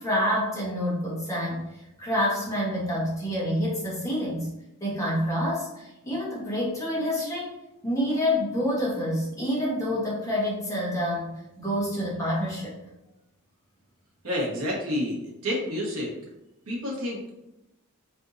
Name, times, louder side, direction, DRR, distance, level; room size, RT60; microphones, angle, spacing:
voice 1, 0.0-1.6 2.0-4.5 4.8-7.6 7.8-12.7, equal, 15° left, -6 dB, 1.2 m, -27 dB
voice 2, 14.2-16.1 16.7-17.3, left 1 dB, 70° right, -3 dB, 1.3 m, -29 dB
4.4 x 3.4 x 2.7 m, 0.91 s
head